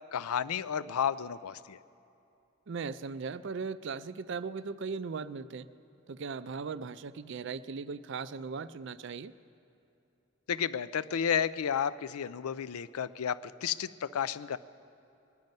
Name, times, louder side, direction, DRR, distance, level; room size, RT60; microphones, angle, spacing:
voice 1, 0.1-1.8 10.5-14.6, left 8 dB, 85° left, 15 dB, 0.4 m, -32 dB
voice 2, 2.7-5.7 6.1-9.3, right 5 dB, 55° right, 15 dB, 0.4 m, -38 dB
22.0 x 10.5 x 5.3 m, 2.8 s
head